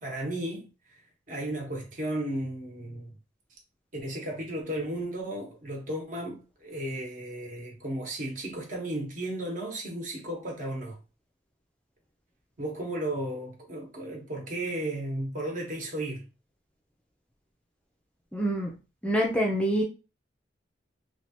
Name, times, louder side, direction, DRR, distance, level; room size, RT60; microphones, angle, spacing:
voice 1, 0.0-0.6 1.3-3.1 3.9-11.0 12.6-16.3, right 1 dB, 50° right, 1.0 m, -34 dB
voice 2, 18.3-18.7 19.0-19.8, equal, 5° left, 0.4 m, -26 dB
3.2 x 2.3 x 2.8 m
head